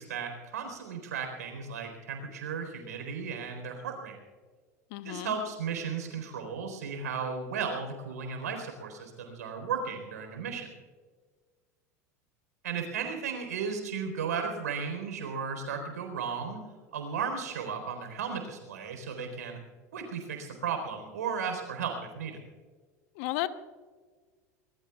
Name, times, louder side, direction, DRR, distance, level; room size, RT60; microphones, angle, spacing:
voice 1, 0.0-4.2 5.0-10.7 12.6-16.6 16.9-19.6 19.9-22.4, right 6 dB, 80° right, 4 dB, 4.1 m, -35 dB
voice 2, 4.9-5.4 23.2-23.5, left 18 dB, 60° left, 12 dB, 1.0 m, -33 dB
24.5 x 20.5 x 2.4 m, 1.5 s
hypercardioid pair, 80°, 9 cm